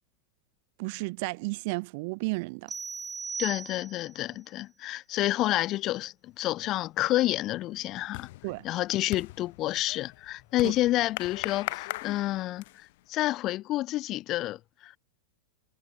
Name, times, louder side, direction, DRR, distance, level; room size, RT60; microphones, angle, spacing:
voice 1, 0.8-2.7 8.4-8.6 10.6-10.7, right 27 dB, 45° right, 3.5 m, -33 dB
sound 1, 2.7-4.2, right 5 dB, 15° right, 2.9 m, -37 dB
voice 2, 3.4-8.3 8.6-15.0, left 16 dB, 35° left, 5.3 m, -29 dB
sound 2, 6.5-6.9 7.2-13.0, left 20 dB, 50° left, 3.0 m, -40 dB
figure-of-eight pair, 90°, 0 cm